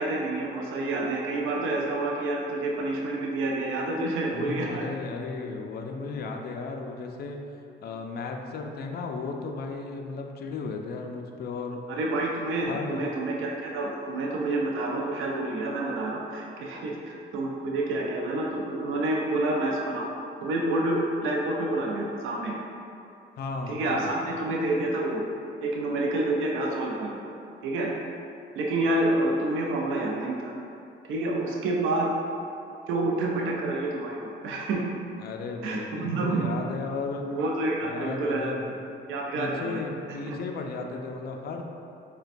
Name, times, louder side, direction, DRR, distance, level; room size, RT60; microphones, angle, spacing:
voice 1, 0.0-4.8 11.9-20.1 20.4-22.5 23.7-25.2 25.6-27.2 27.6-27.9 28.6-30.5 31.1-32.1 32.9-34.9 35.6-36.5 37.2-38.5 39.1-39.8 40.3-40.4, right 2 dB, 90° right, -1 dB, 0.5 m, -28 dB
voice 2, 4.3-7.4 7.8-11.8 12.7-13.0 23.4-24.1 35.2-37.2 37.8-38.8 39.4-41.7, left 4 dB, 55° left, 3 dB, 0.4 m, -35 dB
6.5 x 2.2 x 2.5 m, 2.6 s
cardioid pair, 90°, 20 cm